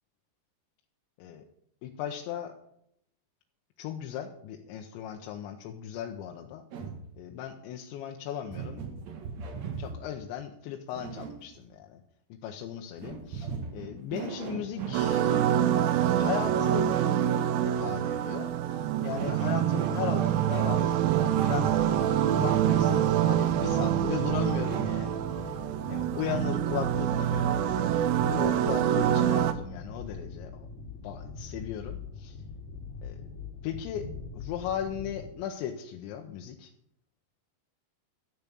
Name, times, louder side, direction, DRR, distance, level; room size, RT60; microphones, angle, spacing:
voice 1, 1.8-2.5 3.8-6.6 7.2-8.8 9.8-12.0 12.4-15.3 16.1-16.9 17.7-20.9 21.4-21.7 22.3-25.6 25.9-27.6 28.3-30.7 31.0-32.4 33.0-33.2 33.6-34.0 34.3-36.7, left 10 dB, 80° left, 3 dB, 3.1 m, -37 dB
sound 1, 6.7-7.1 8.5-10.1 10.9-11.6 13.0-15.6 16.6-17.8 18.9-21.7 22.4-23.0 23.8-25.2, right 6 dB, 65° right, 1.8 m, -39 dB
sound 2, 14.9-29.5, right 10 dB, 85° right, 2.0 m, -26 dB
sound 3, 21.5-35.3, left 4 dB, 30° left, 3.4 m, -42 dB
13.0 x 7.1 x 8.5 m, 0.72 s
omnidirectional pair, 5.2 m